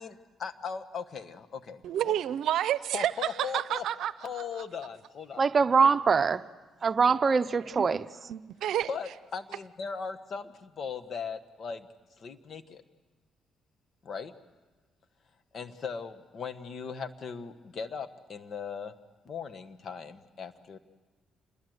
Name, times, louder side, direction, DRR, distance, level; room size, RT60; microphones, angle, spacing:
voice 1, 0.0-2.1 2.9-3.8 4.2-5.4 8.9-11.9 12.2-12.8 14.0-14.3 15.5-18.9 19.2-20.8, left 6 dB, 55° left, 1.4 m, -38 dB
voice 2, 1.8-4.1 7.9-8.0 8.3-8.9, right 11 dB, 80° right, 0.7 m, -29 dB
voice 3, 5.4-6.4 6.8-8.1, right 5 dB, 40° right, 0.7 m, -23 dB
27.5 x 21.5 x 8.0 m
cardioid pair, 90°, 0 cm